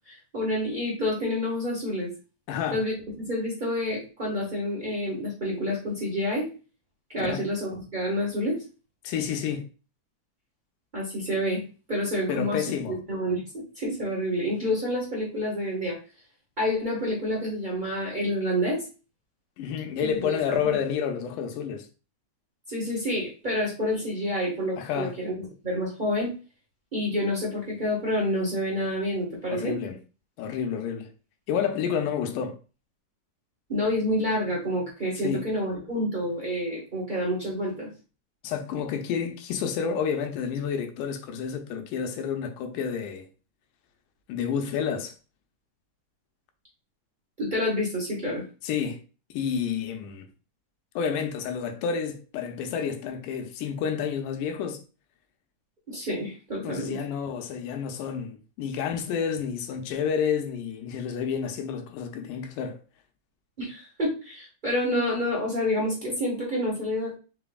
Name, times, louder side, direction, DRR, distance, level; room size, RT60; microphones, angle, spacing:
voice 1, 0.1-2.1 2.7-6.5 7.1-8.6 10.9-11.6 11.9-15.9 16.6-18.8 20.0-20.6 22.7-25.3 25.6-26.3 26.9-29.7 33.7-37.9 47.4-48.4 55.9-57.0 63.6-67.1, left 1 dB, 55° right, 0.5 m, -28 dB
voice 2, 2.5-2.8 7.1-7.4 9.0-9.7 12.3-13.0 19.6-21.9 24.8-25.2 29.5-30.0 30.4-31.1 31.5-32.6 35.2-35.5 38.4-43.3 44.3-45.1 48.6-49.0 49.3-50.3 51.0-54.8 56.6-62.8, left 7 dB, 85° left, 2.2 m, -29 dB
5.0 x 3.9 x 2.3 m
omnidirectional pair, 3.6 m